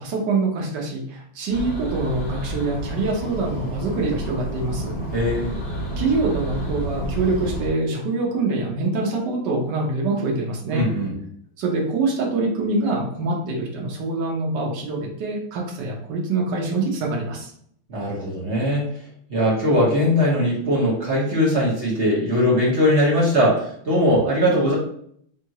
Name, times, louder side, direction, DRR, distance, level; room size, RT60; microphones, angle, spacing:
voice 1, 0.0-5.0 6.0-10.9 11.6-17.5, right 3 dB, 60° right, -1 dB, 1.4 m, -25 dB
sound 1, 1.5-7.7, right 1 dB, 20° left, 1.3 m, -30 dB
voice 2, 5.1-5.5 10.7-11.1 17.9-18.9 19.3-24.7, equal, 40° right, -6 dB, 1.2 m, -20 dB
3.7 x 3.4 x 2.9 m, 0.65 s
omnidirectional pair, 2.4 m